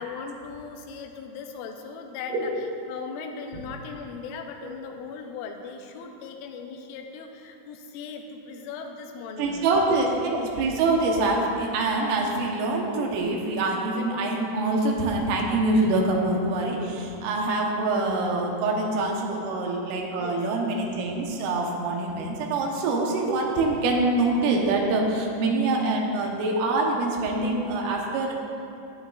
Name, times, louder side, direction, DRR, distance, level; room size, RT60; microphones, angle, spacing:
voice 1, 0.0-9.7 10.1-10.2 19.3-19.4 20.2-20.4, left 5 dB, 85° left, 4 dB, 3.1 m, -38 dB
voice 2, 9.4-28.3, right 2 dB, 85° right, 0 dB, 3.7 m, -25 dB
14.5 x 9.5 x 2.4 m, 2.7 s
omnidirectional pair, 5.6 m